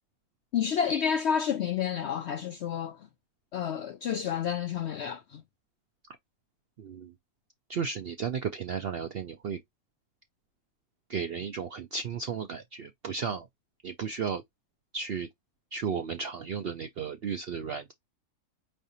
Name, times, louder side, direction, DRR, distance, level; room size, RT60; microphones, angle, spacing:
voice 1, 0.5-3.1 3.5-5.4, left 8 dB, 70° left, 0.6 m, -30 dB
voice 2, 6.8-7.1 7.7-9.6 11.1-13.5 13.8-14.4 14.9-15.3 15.7-17.9, right 6 dB, 70° right, 0.5 m, -34 dB
5.0 x 3.2 x 2.7 m
omnidirectional pair, 1.6 m